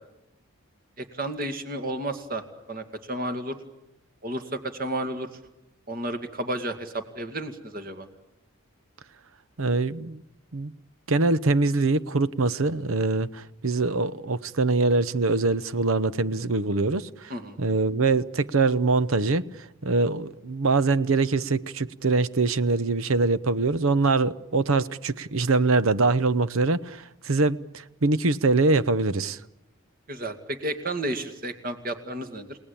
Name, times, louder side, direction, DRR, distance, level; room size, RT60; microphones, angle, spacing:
voice 1, 1.0-2.4 2.7-3.6 4.2-5.3 5.9-8.1 17.3-17.6 30.1-32.6, right 1 dB, 40° right, 2.3 m, -32 dB
voice 2, 9.6-10.2 10.5-10.7 11.1-17.3 17.6-29.4, right 3 dB, 80° right, 0.8 m, -23 dB
29.5 x 19.0 x 8.7 m
head